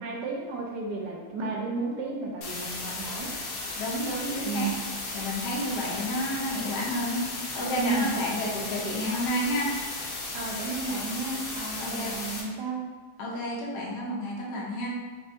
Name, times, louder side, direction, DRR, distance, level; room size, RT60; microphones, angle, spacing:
voice 1, 0.0-3.3 4.4-4.8 7.8-8.1 10.3-12.8, right 3 dB, 80° right, -2 dB, 1.4 m, -33 dB
sound 1, 2.4-12.4, left 3 dB, 65° left, 1.2 m, -35 dB
voice 2, 3.7-4.7 5.1-9.7 11.8-12.2 13.2-15.0, equal, 80° left, -4 dB, 1.4 m, -31 dB
4.2 x 3.4 x 2.7 m, 1.5 s
omnidirectional pair, 1.8 m